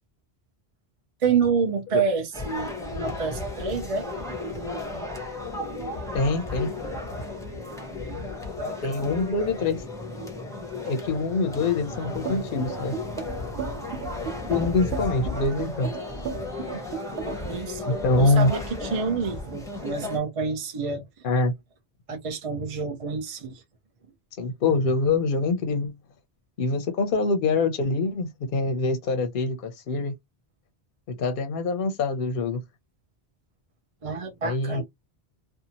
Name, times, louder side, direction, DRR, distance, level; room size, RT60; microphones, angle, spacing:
voice 1, 1.2-4.1 8.1-9.2 17.2-21.2 22.1-23.6 34.0-34.8, right 5 dB, 40° right, 0.5 m, -29 dB
sound 1, 2.3-20.2, left 2 dB, 5° left, 0.7 m, -34 dB
voice 2, 6.1-6.7 8.8-9.8 10.9-12.9 14.5-15.9 17.9-18.5 21.2-21.5 24.4-25.9 26.6-30.1 31.1-32.6 34.4-34.8, left 3 dB, 60° left, 0.7 m, -25 dB
sound 2, 12.3-17.5, right 7 dB, 80° right, 1.2 m, -34 dB
2.7 x 2.3 x 2.8 m
omnidirectional pair, 1.1 m